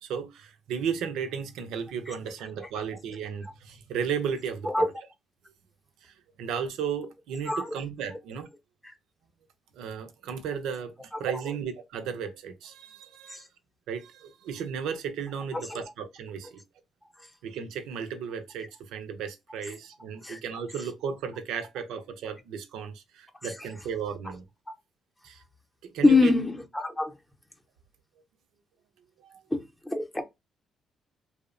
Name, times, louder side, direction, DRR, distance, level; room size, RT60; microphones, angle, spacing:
voice 1, 0.0-4.9 6.0-8.5 9.8-13.5 13.9-16.6 17.4-24.4 25.2-25.4 25.8-26.3 29.3-29.4, right 7 dB, 90° right, 0.5 m, -34 dB
voice 2, 7.5-7.8 8.8-8.9 13.3-13.4 15.5-15.8 20.2-20.4 26.0-27.2 29.5-30.2, left 3 dB, 10° left, 0.6 m, -25 dB
2.7 x 2.0 x 2.4 m
cardioid pair, 90°, 0 cm